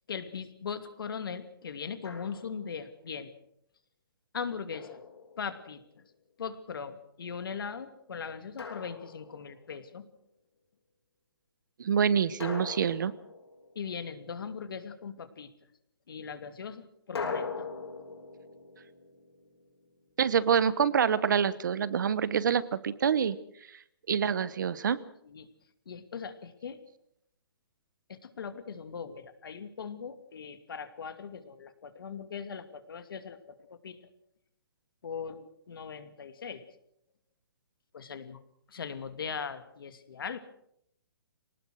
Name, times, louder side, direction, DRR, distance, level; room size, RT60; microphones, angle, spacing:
voice 1, 0.1-3.3 4.3-5.0 5.4-5.8 6.4-10.0 13.8-15.5 16.1-17.7 25.3-25.5 25.9-26.8 28.1-33.4 33.8-34.0 35.0-36.6 37.9-38.4 38.7-40.4, left 6 dB, 60° left, 10 dB, 2.6 m, -39 dB
Drum, 2.0-2.7 4.7-5.8 8.6-9.7 12.4-14.1 17.2-20.1, left 5 dB, 90° left, 8.0 m, -41 dB
voice 2, 11.8-13.1 20.2-23.4 24.1-25.0, right 7 dB, 50° right, 16 dB, 1.1 m, -26 dB
24.5 x 19.0 x 6.5 m, 0.73 s
hypercardioid pair, 175°, 13 cm